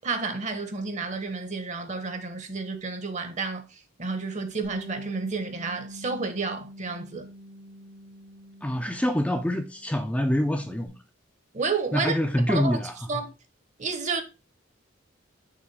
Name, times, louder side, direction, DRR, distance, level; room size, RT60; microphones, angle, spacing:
voice 1, 0.0-7.3 11.5-12.1 12.5-12.8 13.1-13.3 13.8-14.2, right 4 dB, 35° right, 1.0 m, -31 dB
Bass guitar, 4.6-9.3 9.7-10.9, equal, 85° right, 1.8 m, -44 dB
voice 2, 8.6-10.9 11.9-13.2, left 1 dB, 5° left, 0.5 m, -26 dB
6.1 x 3.3 x 4.7 m
head